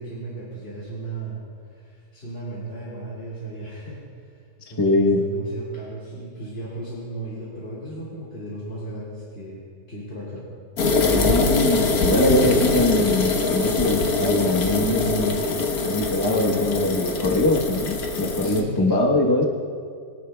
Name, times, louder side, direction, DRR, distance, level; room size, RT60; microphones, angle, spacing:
voice 1, 0.0-1.4 1.7-4.3 4.7-9.6 9.9-10.5 12.2-12.5 18.4-18.8, right 2 dB, 40° left, -7 dB, 2.4 m, -35 dB
voice 2, 4.8-5.2 10.9-15.4 15.8-19.4, left 1 dB, 20° left, -2 dB, 0.9 m, -22 dB
sound 1, 10.8-18.6, left 3 dB, 70° left, 1.5 m, -23 dB
23.0 x 10.0 x 2.3 m, 2.2 s
omnidirectional pair, 1.7 m